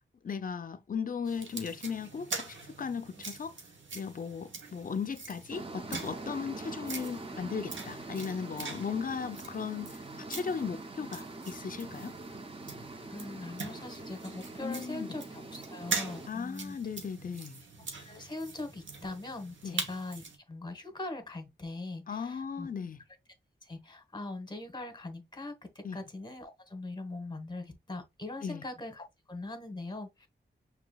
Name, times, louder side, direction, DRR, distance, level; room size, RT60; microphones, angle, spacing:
voice 1, 0.2-3.6 3.9-12.1 14.6-15.1 16.3-17.6 19.6-19.8 22.1-23.0 25.8-26.0 28.4-28.6, left 6 dB, 45° left, 0.5 m, -37 dB
sound 1, 1.2-20.4, right 4 dB, 85° right, 1.1 m, -43 dB
sound 2, 5.5-16.3, right 2 dB, 30° right, 0.7 m, -44 dB
voice 2, 13.1-16.8 18.0-22.7 23.6-30.3, left 2 dB, 25° left, 1.1 m, -41 dB
6.0 x 2.8 x 2.3 m
wide cardioid pair, 90°, 19 cm